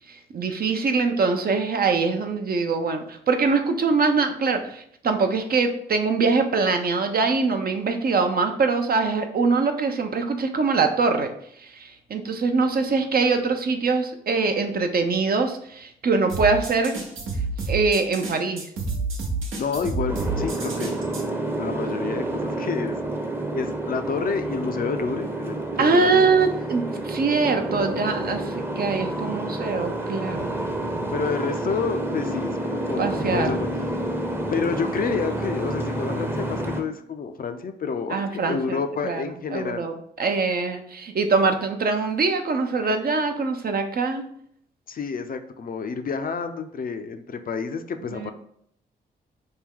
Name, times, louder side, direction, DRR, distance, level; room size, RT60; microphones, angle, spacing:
voice 1, 0.1-11.3 11.6-17.0 17.7-18.7 25.8-30.5 33.0-33.5 38.1-39.2 39.5-44.2 48.1-48.3, right 4 dB, 50° right, 6 dB, 0.6 m, -23 dB
sound 1, 16.3-21.2, right 3 dB, 80° right, 0.9 m, -29 dB
voice 2, 19.6-21.0 21.6-23.0 23.5-26.3 31.1-33.7 34.5-39.9 44.9-48.3, left 5 dB, 45° left, 8 dB, 0.4 m, -29 dB
Boat Water vehicle, 20.1-36.8, right 1 dB, 10° right, 0.7 m, -29 dB
3.4 x 2.2 x 3.6 m, 0.68 s
supercardioid pair, 40°, 20 cm